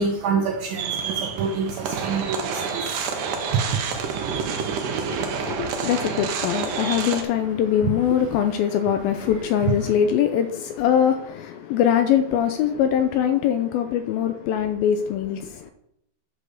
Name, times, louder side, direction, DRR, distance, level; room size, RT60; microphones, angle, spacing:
voice 1, 0.0-5.9 6.7-6.9 7.8-7.9, right 5 dB, 90° right, 1.7 m, -29 dB
sound 1, 0.8-7.2, right 6 dB, 70° right, 2.2 m, -28 dB
voice 2, 4.6-15.7, left 9 dB, 80° left, 2.2 m, -23 dB
10.0 x 5.3 x 6.4 m
omnidirectional pair, 4.7 m